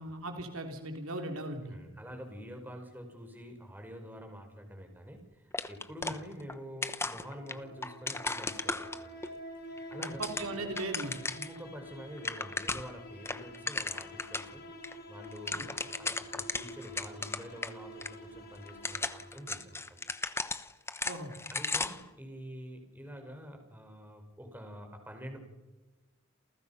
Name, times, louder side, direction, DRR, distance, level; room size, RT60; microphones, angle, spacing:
voice 1, 0.0-1.8 6.0-6.1 10.0-11.2 15.5-15.7 21.0-21.4, right 2 dB, 75° right, 4 dB, 3.7 m, -38 dB
voice 2, 1.7-9.2 9.6-10.2 11.4-14.6 15.1-20.0 21.5-25.4, equal, 10° right, 4 dB, 4.8 m, -47 dB
sound 1, 5.5-6.6 6.8-9.3 9.8-11.6 11.9-12.0 12.2-13.0 13.3-14.5 14.8-14.9 15.2-17.7 18.0-18.1 18.7-22.1, left 3 dB, 10° left, 1.0 m, -36 dB
sound 2, 7.2-20.1, left 1 dB, 45° left, 4.2 m, -48 dB
28.5 x 28.5 x 5.7 m, 1.1 s
head